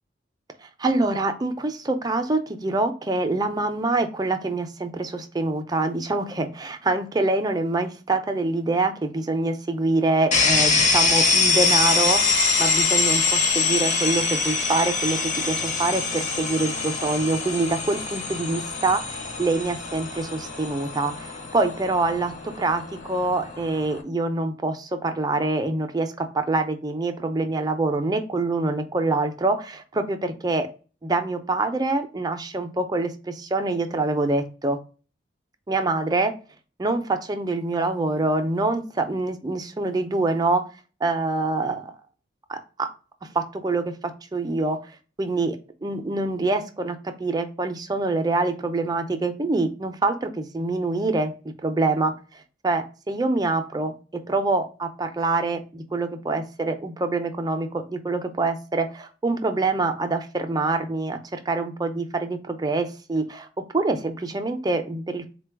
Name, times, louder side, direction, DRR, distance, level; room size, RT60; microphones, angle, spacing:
voice 1, 0.6-30.7 31.0-34.8 35.7-36.3 36.8-40.6 41.0-41.9 42.5-42.9 43.3-43.9 44.3-44.9 45.2-52.1 52.6-53.9 54.3-63.5 63.7-65.3, right 2 dB, 20° right, 6 dB, 0.5 m, -25 dB
sound 1, 10.3-24.0, left 4 dB, 45° left, 0.8 m, -24 dB
4.0 x 2.2 x 4.5 m, 0.35 s
head